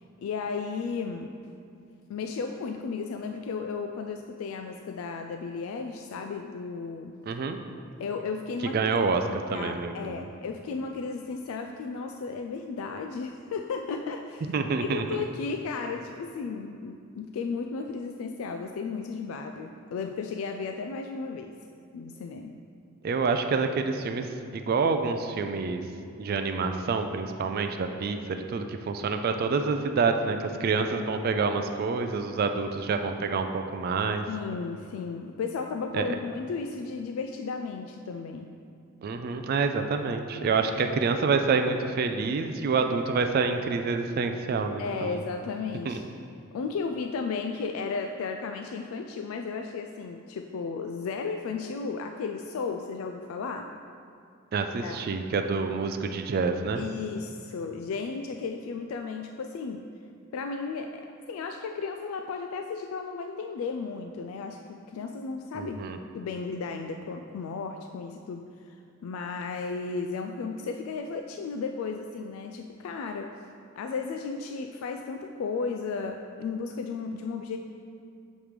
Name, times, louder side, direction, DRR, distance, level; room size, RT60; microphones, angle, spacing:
voice 1, 0.2-1.3 2.1-7.2 8.0-8.9 9.5-14.5 14.8-21.6 21.9-22.6 34.3-38.5 44.8-46.1 46.5-53.7 54.8-55.1 56.8-59.8 60.3-65.8 66.1-73.4 73.7-77.6, left 4 dB, 80° left, 5 dB, 0.3 m, -34 dB
voice 2, 7.3-7.6 8.7-10.3 14.5-15.0 23.0-25.8 26.2-34.2 35.9-36.1 39.0-45.2 45.8-46.0 54.5-56.8 65.5-66.0, right 4 dB, 45° right, 6 dB, 0.3 m, -27 dB
7.2 x 3.1 x 5.0 m, 2.4 s
head